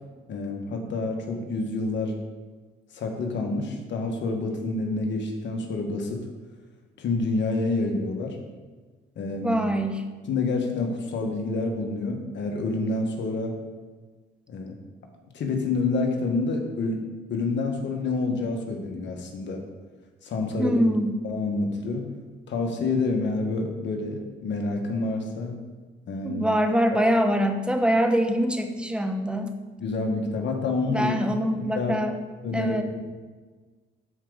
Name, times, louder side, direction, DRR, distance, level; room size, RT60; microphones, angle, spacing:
voice 1, 0.3-2.2 2.9-6.2 7.0-8.4 9.2-9.6 10.3-13.6 14.5-14.8 15.3-17.0 17.3-19.6 20.2-20.8 21.2-22.1 22.5-25.5 26.1-26.5 29.8-31.9 32.4-33.0, left 3 dB, 65° left, 2 dB, 1.5 m, -28 dB
voice 2, 9.4-10.0 20.6-21.1 26.2-29.5 30.9-32.1 32.5-32.8, equal, 5° right, 5 dB, 0.9 m, -24 dB
12.5 x 4.7 x 3.9 m, 1.4 s
cardioid pair, 90°, 20 cm